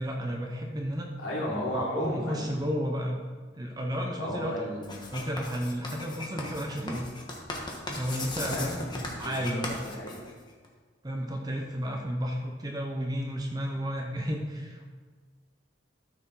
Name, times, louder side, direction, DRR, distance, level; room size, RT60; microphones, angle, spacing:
voice 1, 0.0-1.1 1.7-3.2 3.5-4.7 5.1-7.1 7.9-9.8 11.0-14.9, equal, 20° right, 1 dB, 0.9 m, -32 dB
voice 2, 1.2-2.5 4.1-5.1 8.5-8.7 9.0-10.3, left 1 dB, 75° left, -5 dB, 3.1 m, -34 dB
Writing, 4.8-10.7, left 2 dB, 25° left, 1.4 m, -37 dB
13.0 x 6.9 x 4.1 m, 1.4 s
head